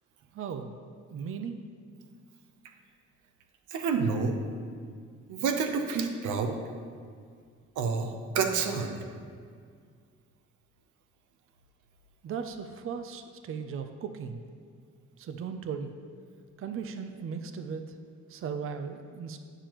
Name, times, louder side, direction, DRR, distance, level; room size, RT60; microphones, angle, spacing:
voice 1, 0.3-0.7 1.1-1.6 12.2-14.4 15.2-15.9 16.6-17.8 18.3-19.4, right 6 dB, 45° right, 7 dB, 0.5 m, -37 dB
voice 2, 3.7-4.4 5.3-6.5 7.8-9.0, right 5 dB, 80° right, 5 dB, 0.8 m, -28 dB
8.8 x 6.7 x 3.0 m, 2.1 s
cardioid pair, 90°, 30 cm